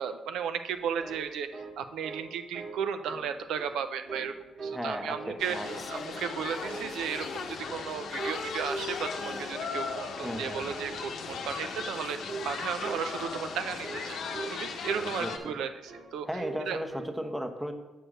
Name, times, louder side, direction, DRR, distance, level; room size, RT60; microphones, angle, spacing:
voice 1, 0.0-4.3 4.6-14.2 14.5-16.3 16.7-16.8, right 7 dB, 80° right, 9 dB, 0.4 m, -35 dB
sound 1, 1.0-2.3 2.5-2.8 3.0-3.7 4.1-4.8 5.1-5.8 6.1-6.4 6.6-7.4 7.7-7.9 8.2-8.4 8.7-9.4 9.7-9.9 10.2-10.5 10.7-11.0 11.2-11.5 11.8-12.0 12.3-12.5 12.8-13.0 13.3-13.5 13.8-14.1 14.3-14.6 14.8-15.6 15.9-16.1 16.4-16.6 16.9-17.1, right 4 dB, 50° right, 1.8 m, -41 dB
voice 2, 4.7-5.7 10.2-10.7 15.2-15.6 16.2-17.7, equal, 5° right, 6 dB, 0.9 m, -35 dB
sound 2, 5.4-15.4, left 5 dB, 70° left, 0.8 m, -37 dB
Female singing, 5.6-7.9 8.2-10.2 10.8-11.0, left 4 dB, 30° left, 0.5 m, -43 dB
6.5 x 4.5 x 6.4 m, 1.1 s
cardioid pair, 70°, 0 cm